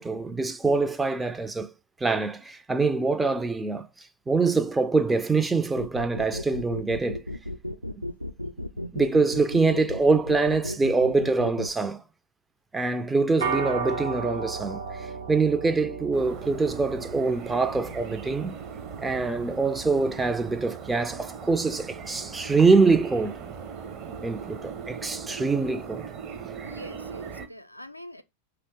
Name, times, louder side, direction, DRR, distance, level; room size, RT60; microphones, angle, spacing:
voice 1, 0.0-1.7 2.0-7.2 7.9-8.0 8.9-12.0 12.7-18.6 19.0-23.4 24.2-26.1, right 3 dB, 10° right, 0.4 m, -24 dB
sound 1, 5.8-11.7, left 1 dB, 90° right, 0.4 m, -34 dB
sound 2, 13.4-22.9, right 5 dB, 65° right, 0.9 m, -37 dB
sound 3, 16.1-27.5, right 6 dB, 35° right, 0.8 m, -39 dB
voice 2, 26.6-28.2, equal, 90° left, 0.4 m, -44 dB
5.4 x 2.9 x 3.3 m
figure-of-eight pair, 90°, 0 cm